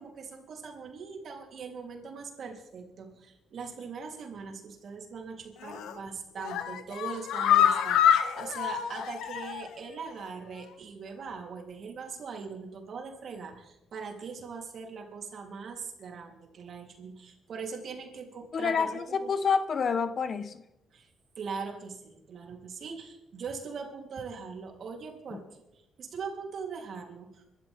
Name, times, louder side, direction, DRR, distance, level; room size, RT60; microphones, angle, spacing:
voice 1, 0.0-19.3 20.9-21.1 21.4-25.6 26.0-27.4, right 5 dB, 60° right, 3.6 m, -41 dB
sound 1, 5.6-6.0 6.4-9.8 10.1-10.2 10.6-10.7, left 9 dB, 85° left, 1.3 m, -26 dB
voice 2, 18.5-20.6 25.3-25.4, left 5 dB, 50° left, 1.1 m, -28 dB
25.5 x 13.5 x 3.7 m
cardioid pair, 90°, 0 cm